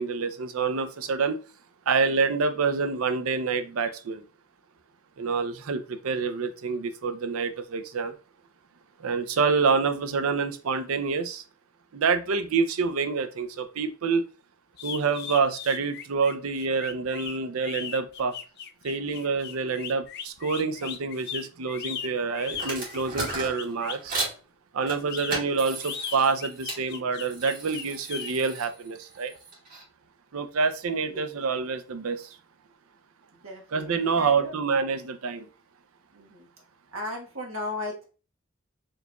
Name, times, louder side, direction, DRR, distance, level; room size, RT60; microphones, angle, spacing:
voice 1, 0.0-1.4 1.9-4.2 5.2-8.1 9.0-11.4 11.9-14.2 14.8-18.4 18.8-24.1 24.7-29.3 30.3-32.4 33.7-35.5, right 5 dB, 90° right, 9 dB, 0.5 m, -27 dB
sound 1, 14.7-24.1 24.9-28.3, left 7 dB, 50° left, 0.4 m, -38 dB
sound 2, 22.5-24.4 24.9-26.8 27.2-29.8, right 2 dB, 45° right, 1.6 m, -36 dB
voice 2, 33.3-34.6 36.1-36.5 36.9-38.0, left 2 dB, 75° right, 0 dB, 1.3 m, -36 dB
4.5 x 2.9 x 2.2 m, 0.35 s
head